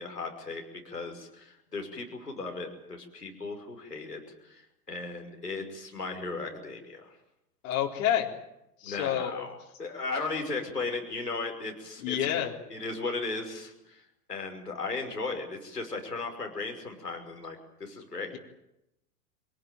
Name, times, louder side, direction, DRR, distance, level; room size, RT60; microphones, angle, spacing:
voice 1, 0.0-4.6 4.9-7.1 8.8-12.2 12.7-14.0 14.3-18.3, left 3 dB, 85° left, 3 dB, 5.9 m, -36 dB
voice 2, 7.6-8.3 8.8-9.4 12.0-12.5, left 11 dB, 55° left, -1 dB, 4.2 m, -28 dB
25.0 x 18.5 x 9.3 m, 0.85 s
figure-of-eight pair, 95°, 46 cm